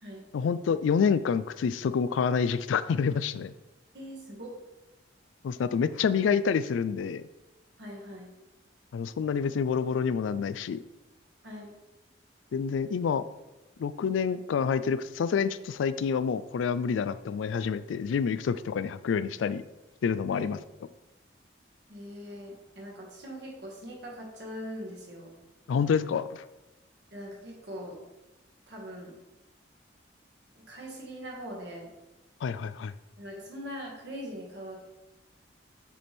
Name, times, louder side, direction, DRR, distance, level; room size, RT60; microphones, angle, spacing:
voice 1, 0.3-3.5 5.4-7.2 8.9-10.8 12.5-13.2 13.8-19.6 20.0-20.6 25.7-26.4 32.4-32.9, left 6 dB, 85° left, 14 dB, 0.3 m, -28 dB
voice 2, 3.9-4.5 7.8-8.3 11.4-11.7 20.3-20.5 21.9-25.3 27.1-28.0 28.7-29.1 30.5-31.9 33.2-34.8, equal, 65° right, -3 dB, 1.8 m, -41 dB
7.4 x 4.2 x 3.4 m, 1.0 s
head